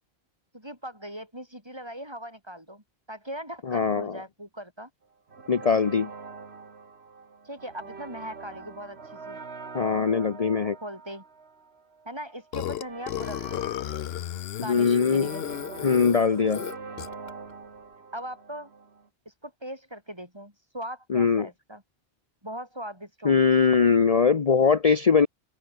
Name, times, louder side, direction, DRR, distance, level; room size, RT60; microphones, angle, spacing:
voice 1, 0.5-4.9 7.4-9.4 10.8-11.2 12.0-13.7 14.6-15.4 18.1-18.7 19.3-21.8 22.4-23.5, equal, 25° right, 7.7 m, -39 dB
voice 2, 3.7-4.2 5.5-6.1 9.7-10.8 14.7-15.3 15.8-16.6 21.1-21.5 23.2-25.3, left 5 dB, 40° left, 0.9 m, -21 dB
sound 1, 5.3-19.1, right 4 dB, 85° right, 2.1 m, -44 dB
Burping eructation, 12.5-17.3, left 11 dB, 75° left, 0.8 m, -34 dB
open air
omnidirectional pair, 1.1 m